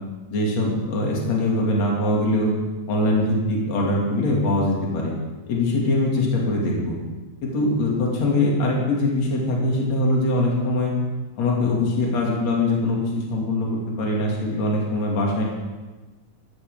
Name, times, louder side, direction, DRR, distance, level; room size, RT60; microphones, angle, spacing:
voice 1, 0.3-2.5 2.9-5.1 5.5-7.0 7.4-10.9 11.4-13.7 14.0-15.4, left 2 dB, 55° left, -2 dB, 3.5 m, -22 dB
15.5 x 14.5 x 3.7 m, 1.2 s
omnidirectional pair, 4.0 m